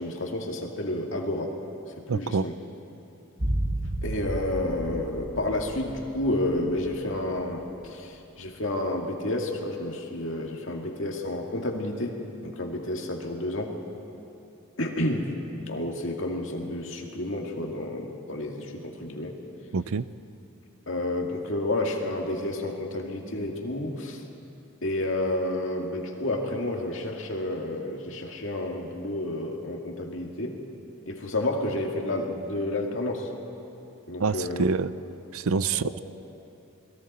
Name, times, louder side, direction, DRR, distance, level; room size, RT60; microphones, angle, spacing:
voice 1, 0.0-1.5 2.1-2.5 4.0-13.8 14.8-15.3 15.7-19.4 20.9-24.3 24.8-30.6 31.1-33.3 34.1-34.6 35.7-35.9, left 1 dB, 60° left, 1 dB, 2.2 m, -30 dB
voice 2, 2.1-2.5 19.7-20.1 34.2-34.9 35.3-36.0, right 5 dB, 80° right, 15 dB, 0.5 m, -26 dB
sound 1, 3.4-7.6 7.9-8.0, right 1 dB, 40° right, 1.4 m, -32 dB
29.0 x 21.5 x 4.3 m, 2.8 s
head